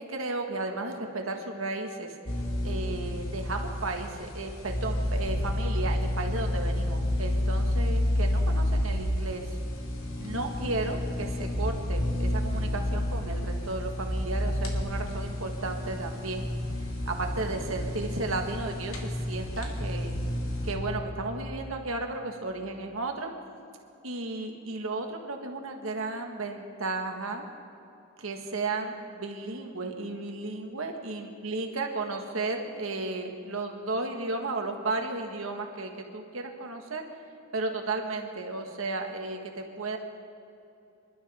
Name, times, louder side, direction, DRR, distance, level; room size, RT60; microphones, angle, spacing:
voice 1, 0.0-2.2 2.6-9.6 10.2-16.5 17.0-20.1 20.6-23.3 24.0-27.4 28.2-37.0 37.5-40.0, right 3 dB, 85° right, 3 dB, 1.7 m, -34 dB
sound 1, 2.3-20.8, left 1 dB, 80° left, 2.1 m, -30 dB
25.5 x 12.0 x 3.6 m, 2.7 s
head